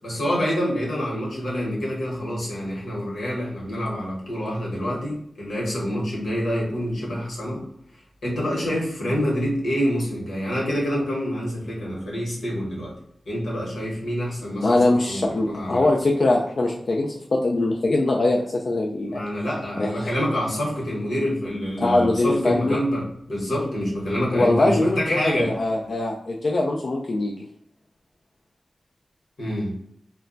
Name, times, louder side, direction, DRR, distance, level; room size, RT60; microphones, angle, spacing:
voice 1, 0.0-7.6 8.2-12.9 13.3-15.9 19.1-25.5 29.4-29.7, equal, 85° left, -3 dB, 1.1 m, -27 dB
voice 2, 14.6-19.2 19.8-20.1 21.8-22.8 24.3-25.0 25.2-27.3, left 2 dB, 55° left, -1 dB, 0.3 m, -22 dB
2.2 x 2.2 x 3.8 m, 0.72 s
wide cardioid pair, 85°, 0 cm